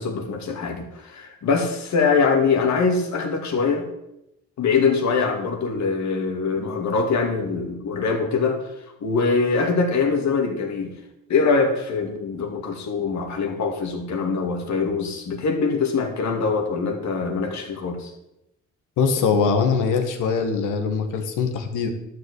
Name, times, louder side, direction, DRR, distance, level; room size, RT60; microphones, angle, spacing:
voice 1, 0.0-3.9 4.6-8.7 9.0-11.0 11.3-18.1, left 4 dB, 65° left, 3 dB, 2.4 m, -23 dB
voice 2, 19.0-21.9, left 5 dB, 85° left, 5 dB, 1.9 m, -22 dB
12.0 x 5.1 x 8.3 m, 0.86 s
cardioid pair, 90°, 30 cm